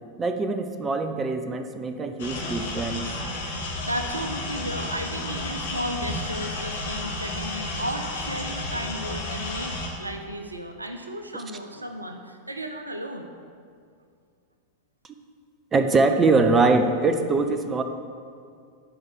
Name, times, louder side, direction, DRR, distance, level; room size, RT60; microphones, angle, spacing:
voice 1, 0.2-3.0 15.7-17.8, right 3 dB, 20° right, 8 dB, 0.6 m, -22 dB
sound 1, 2.2-9.9, left 2 dB, 60° left, 2.1 m, -32 dB
voice 2, 3.8-13.4, equal, 80° right, 6 dB, 0.8 m, -34 dB
11.0 x 4.9 x 7.3 m, 2.2 s
figure-of-eight pair, 90°, 0 cm